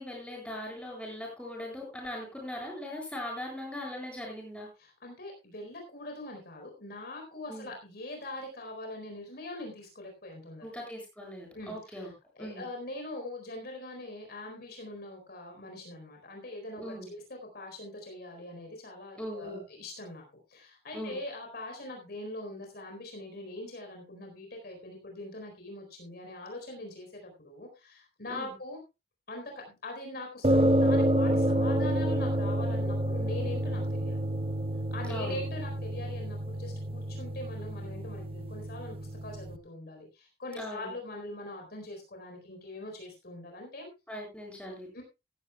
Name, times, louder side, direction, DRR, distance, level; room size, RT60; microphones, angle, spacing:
voice 1, 0.0-4.7 7.5-7.7 10.6-12.1 12.4-12.6 16.8-17.1 19.2-19.6 20.9-21.2 28.3-28.5 35.1-35.4 40.6-40.9 44.1-45.0, left 1 dB, 5° left, -1 dB, 7.6 m, -40 dB
voice 2, 4.8-10.7 11.5-20.2 20.5-28.8 29.3-34.2 34.9-43.9 44.9-45.0, left 2 dB, 60° left, 2 dB, 4.2 m, -42 dB
sound 1, 30.4-39.6, right 1 dB, 30° right, 0.8 m, -29 dB
16.0 x 14.5 x 2.3 m, 0.26 s
head